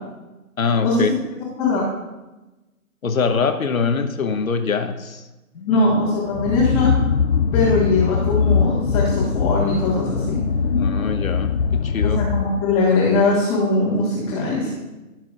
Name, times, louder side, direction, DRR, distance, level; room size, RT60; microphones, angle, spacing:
voice 1, 0.6-1.1 3.0-5.2 5.5-5.9 10.8-12.2, left 5 dB, 70° left, 7 dB, 1.0 m, -23 dB
voice 2, 5.7-6.9 7.5-10.4 12.0-14.7, left 3 dB, 10° left, -9 dB, 1.4 m, -20 dB
sound 1, 6.3-12.8, left 6 dB, 50° left, 0.5 m, -21 dB
16.0 x 6.0 x 2.5 m, 1.1 s
figure-of-eight pair, 150°, 43 cm